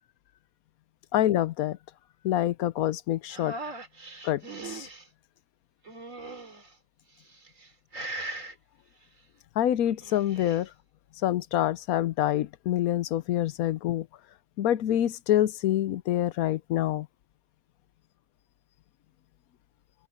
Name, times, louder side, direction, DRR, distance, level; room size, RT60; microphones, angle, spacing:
voice 1, 1.1-1.8 2.2-3.6 4.2-4.9 9.6-10.7 11.2-14.1 14.6-17.1, left 12 dB, 85° left, 1.1 m, -26 dB
sound 1, 3.3-5.0 5.9-6.7 7.3-7.7 7.9-8.5 9.9-10.6, right 2 dB, 65° right, 3.7 m, -39 dB
open air
omnidirectional pair, 1.5 m